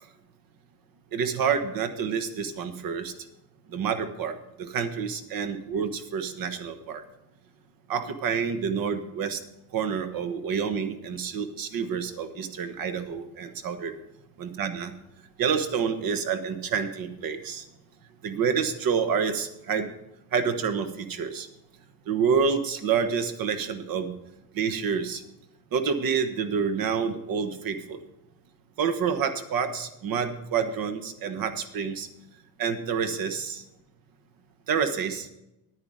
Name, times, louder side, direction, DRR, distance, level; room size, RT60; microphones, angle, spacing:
voice 1, 1.1-3.1 3.7-7.0 7.9-9.4 9.7-14.0 14.4-14.9 15.4-17.6 18.2-19.9 20.3-21.5 22.1-24.1 24.5-25.2 25.7-28.0 28.8-32.1 32.6-33.6 34.7-35.3, right 6 dB, 50° right, 9 dB, 1.3 m, -28 dB
11.0 x 9.7 x 5.0 m, 0.88 s
cardioid pair, 165°, 44 cm